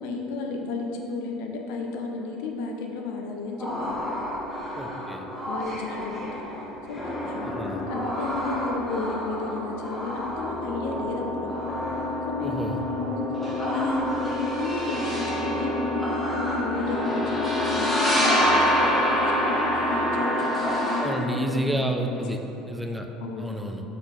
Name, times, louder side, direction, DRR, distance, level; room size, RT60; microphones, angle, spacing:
voice 1, 0.0-3.9 5.5-6.5 6.9-11.5 12.3-12.6 12.9-13.1 13.7-22.2 23.2-23.5, left 3 dB, 60° left, 1 dB, 0.4 m, -33 dB
sound 1, 3.6-21.0, equal, 10° left, 1.0 m, -27 dB
voice 2, 4.8-5.3 7.4-7.8 12.4-12.8 21.0-22.4 22.7-23.1 23.4-23.8, right 1 dB, 5° right, 4 dB, 0.3 m, -30 dB
5.5 x 3.7 x 2.3 m, 3.0 s
figure-of-eight pair, 65°, 0 cm